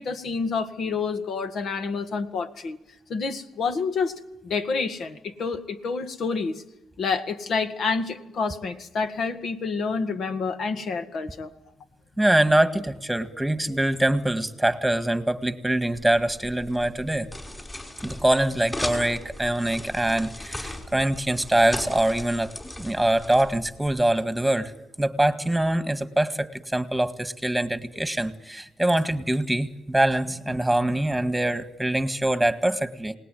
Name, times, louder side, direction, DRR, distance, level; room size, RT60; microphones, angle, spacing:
voice 1, 0.0-2.8 3.1-4.1 4.4-6.6 7.0-11.5 30.9-31.0, left 4 dB, 60° left, 8 dB, 1.9 m, -28 dB
voice 2, 12.2-17.3 18.0-22.5 22.8-24.7 25.0-33.1, right 1 dB, 5° right, 9 dB, 1.9 m, -24 dB
sound 1, 16.0-24.0, left 1 dB, 15° left, 5.4 m, -38 dB
27.5 x 19.0 x 9.3 m, 0.92 s
cardioid pair, 90°, 0 cm